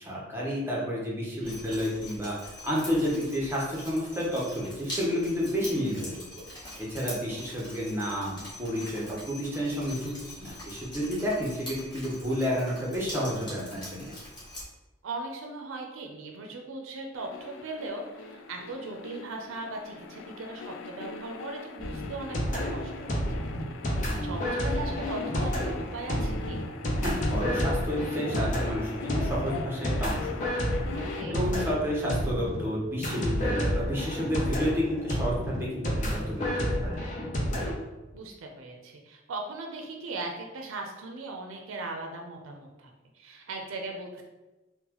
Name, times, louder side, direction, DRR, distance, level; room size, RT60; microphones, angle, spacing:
voice 1, 0.0-6.1 6.8-10.1 10.4-14.1 24.1-24.4 27.0-30.5 31.3-37.0, equal, 10° right, -5 dB, 0.7 m, -30 dB
voice 2, 1.2-1.8 5.7-6.1 15.0-23.5 24.2-26.6 30.9-31.4 38.1-44.2, right 2 dB, 85° right, 2 dB, 0.4 m, -39 dB
Drip, 1.4-14.6, left 1 dB, 20° left, 1.1 m, -43 dB
sound 1, 17.2-31.2, left 4 dB, 75° left, 0.3 m, -40 dB
sound 2, 21.8-37.8, equal, 40° left, 0.6 m, -30 dB
3.9 x 2.1 x 2.9 m, 1.1 s
head